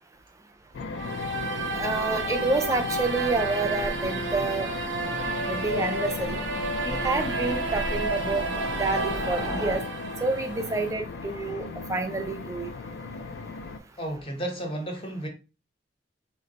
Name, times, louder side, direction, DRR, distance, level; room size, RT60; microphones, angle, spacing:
sound 1, 0.7-13.8, left 4 dB, 65° left, 0.4 m, -36 dB
sound 2, 0.9-10.9, right 2 dB, 80° right, 0.6 m, -32 dB
Train, 1.6-9.8, left 1 dB, 85° left, 0.8 m, -38 dB
voice 1, 1.7-4.7 5.5-6.4 6.8-8.5 8.8-9.8 10.2-12.7, right 3 dB, 15° right, 0.4 m, -28 dB
voice 2, 14.0-15.3, right 1 dB, 30° left, 0.8 m, -32 dB
2.5 x 2.2 x 3.9 m
head